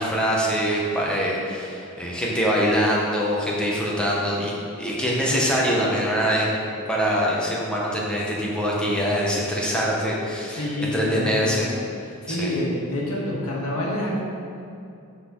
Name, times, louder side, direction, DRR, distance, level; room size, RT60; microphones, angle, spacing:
voice 1, 0.0-6.5 6.9-11.7 12.3-12.5, equal, 5° left, -5 dB, 1.3 m, -24 dB
voice 2, 10.5-11.6 12.2-14.2, left 1 dB, 90° left, -4 dB, 1.8 m, -27 dB
12.0 x 4.2 x 3.9 m, 2.6 s
head